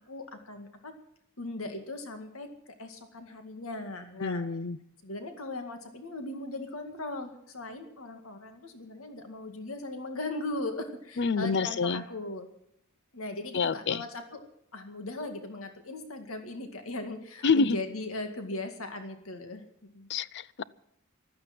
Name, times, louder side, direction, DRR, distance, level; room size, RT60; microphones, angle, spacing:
voice 1, 0.1-0.9 1.4-4.4 5.0-12.5 13.1-14.5 14.7-19.6 19.9-20.1, left 2 dB, 80° left, 6 dB, 2.1 m, -38 dB
voice 2, 4.2-4.8 11.2-12.0 13.5-14.0 17.4-17.8 20.1-20.6, left 4 dB, 55° left, 19 dB, 0.6 m, -27 dB
15.0 x 13.0 x 6.0 m, 0.74 s
head